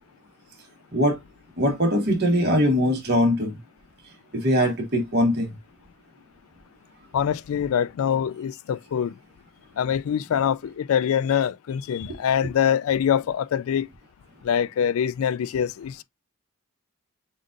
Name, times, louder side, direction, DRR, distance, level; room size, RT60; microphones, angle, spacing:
voice 1, 1.6-3.5 4.3-5.5, equal, 50° right, 1.6 m, -21 dB
voice 2, 7.1-9.1 9.8-13.9 14.4-16.0, left 8 dB, 80° left, 0.3 m, -24 dB
7.3 x 2.6 x 2.6 m
head